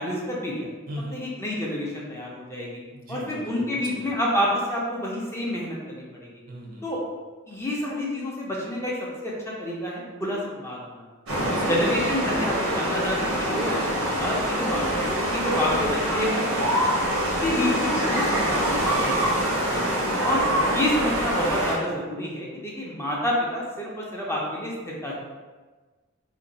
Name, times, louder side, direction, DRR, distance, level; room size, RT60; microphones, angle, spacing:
voice 1, 0.0-0.7 1.1-2.8 3.1-6.0 6.8-7.0 7.5-8.9 9.2-9.3 9.6-11.0 11.7-14.8 15.1-16.4 17.4-19.9 20.2-25.2, left 1 dB, 15° left, -4 dB, 0.5 m, -28 dB
voice 2, 0.9-1.2 2.9-4.2 6.5-6.8 11.3-11.9 12.3-12.6 16.6-16.9 20.1-20.5, equal, 45° right, -2 dB, 0.6 m, -38 dB
sound 1, 11.3-21.8, right 1 dB, 80° right, 0.9 m, -25 dB
2.5 x 2.2 x 3.9 m, 1.3 s
head